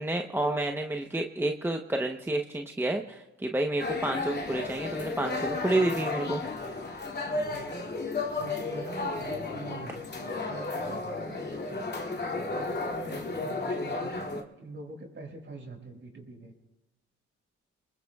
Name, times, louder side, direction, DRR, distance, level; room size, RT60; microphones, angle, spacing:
voice 1, 0.0-6.4, right 2 dB, 5° right, 3 dB, 0.9 m, -29 dB
sound 1, 3.8-14.4, left 3 dB, 35° left, 2.5 m, -33 dB
voice 2, 7.2-7.9 8.3-10.0 10.5-11.8 12.5-16.5, right 2 dB, 40° right, 1 dB, 5.4 m, -44 dB
27.5 x 20.5 x 2.4 m, 1.0 s
cardioid pair, 90°, 30 cm